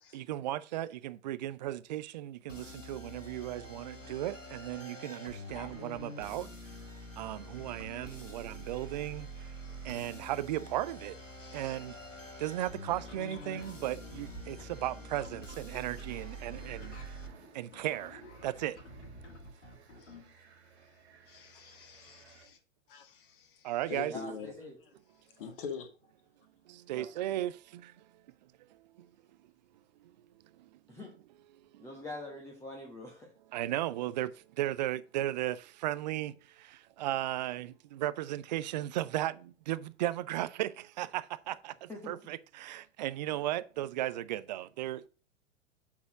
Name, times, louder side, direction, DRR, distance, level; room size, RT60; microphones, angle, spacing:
voice 1, 0.1-6.5 7.2-9.3 9.8-11.2 11.5-12.0 12.4-17.2 17.5-18.8 23.6-24.1 26.7-28.1 28.7-29.1 30.0-30.1 30.6-30.8 31.7-31.9 33.5-45.1, right 14 dB, 35° right, 0.4 m, -36 dB
sound 1, 2.5-17.3, equal, 90° left, 1.2 m, -46 dB
sound 2, 4.0-22.5, right 5 dB, 60° right, 1.8 m, -61 dB
voice 2, 11.4-11.7 20.0-20.2 20.9-21.0 21.3-22.5 22.9-24.5 25.4-25.9, left 6 dB, 45° left, 1.6 m, -44 dB
sound 3, 13.0-20.3, left 1 dB, 65° left, 1.8 m, -52 dB
voice 3, 24.1-24.8 26.9-27.1 30.9-31.1 31.8-33.3 41.9-42.1, left 1 dB, 5° left, 1.2 m, -44 dB
7.2 x 4.1 x 6.1 m
figure-of-eight pair, 100°, 37 cm